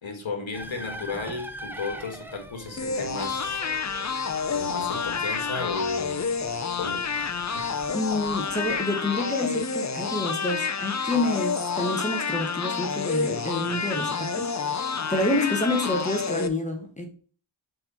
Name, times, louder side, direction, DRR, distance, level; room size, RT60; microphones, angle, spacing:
voice 1, 0.0-3.6 4.5-6.3 6.8-7.6, left 3 dB, 65° left, 1.6 m, -34 dB
sound 1, 0.5-8.7, equal, 5° right, 0.8 m, -44 dB
sound 2, 2.8-16.5, left 5 dB, 35° left, 0.6 m, -29 dB
voice 2, 7.9-17.1, left 2 dB, 15° left, 1.3 m, -28 dB
6.5 x 4.4 x 4.3 m
wide cardioid pair, 80°, 49 cm